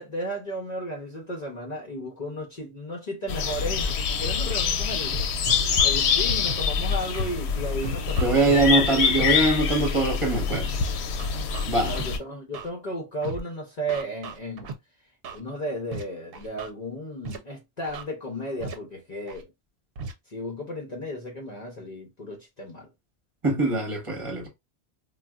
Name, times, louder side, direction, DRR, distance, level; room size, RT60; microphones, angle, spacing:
voice 1, 0.0-5.2 5.8-9.3 11.6-14.7 15.3-19.5 20.3-22.9, equal, 45° left, 0.7 m, -34 dB
sound 1, 3.3-12.2, left 6 dB, 80° left, 0.8 m, -25 dB
Scratching (performance technique), 3.8-3.9 4.5-4.6 5.1-5.9 6.5-6.6 7.1-7.3 7.8-8.7 9.2-9.3 9.8-10.1 10.5-10.7 11.2-12.0 12.5-12.7 13.2-13.4 13.9-14.7 15.2-15.4 15.9-16.0 16.3-16.7 17.2-17.4 17.8-18.0 18.6-18.7 19.3-19.4 20.0-20.1, right 4 dB, 65° right, 0.8 m, -36 dB
voice 2, 8.2-10.8 11.7-12.0 23.4-24.5, right 2 dB, 30° right, 1.0 m, -23 dB
3.9 x 2.2 x 2.3 m
omnidirectional pair, 1.1 m